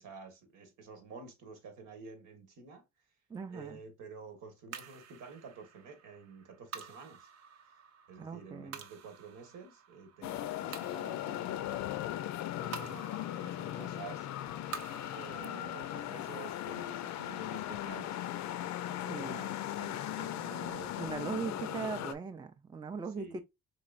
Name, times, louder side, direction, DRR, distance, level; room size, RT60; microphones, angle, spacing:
voice 1, 0.0-2.8 3.5-7.3 8.1-12.0 12.6-14.3 15.1-18.4 19.0-21.9 23.2-23.4, right 5 dB, 80° right, 1.3 m, -50 dB
voice 2, 3.3-3.8 8.2-8.8 19.1-19.5 21.0-23.4, right 5 dB, 15° right, 0.4 m, -39 dB
sound 1, 4.7-19.2, right 6 dB, 60° right, 0.7 m, -51 dB
sound 2, 10.2-22.1, left 13 dB, 65° left, 0.4 m, -38 dB
3.9 x 3.1 x 2.4 m
cardioid pair, 90°, 30 cm